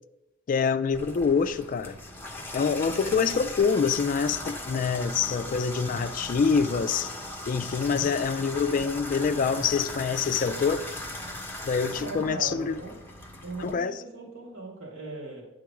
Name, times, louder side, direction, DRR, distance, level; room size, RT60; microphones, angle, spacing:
voice 1, 0.5-2.0 2.5-7.2 7.5-10.9 11.6-12.8 13.6-14.0, left 5 dB, 40° left, 0.3 m, -26 dB
Water tap faucet / Bathtub (filling or washing), 0.9-13.7, left 1 dB, 10° left, 0.9 m, -38 dB
voice 2, 7.8-8.2 11.9-13.0 13.4-15.4, right 2 dB, 85° right, 2.2 m, -39 dB
9.5 x 3.8 x 4.8 m
head